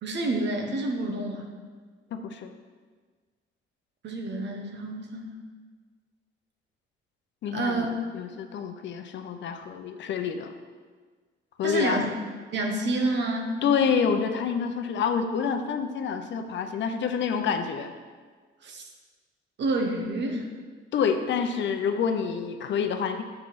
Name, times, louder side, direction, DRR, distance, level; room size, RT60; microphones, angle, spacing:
voice 1, 0.0-1.5 4.0-5.4 7.5-7.9 11.6-12.1 12.5-13.6 18.6-18.9 19.6-20.5, right 2 dB, 60° right, 2 dB, 1.1 m, -28 dB
voice 2, 2.1-2.5 7.4-7.9 8.1-10.5 11.6-12.0 13.6-17.9 20.9-23.2, left 6 dB, 65° left, 7 dB, 0.6 m, -27 dB
7.4 x 4.7 x 4.1 m, 1.5 s
cardioid pair, 90°, 20 cm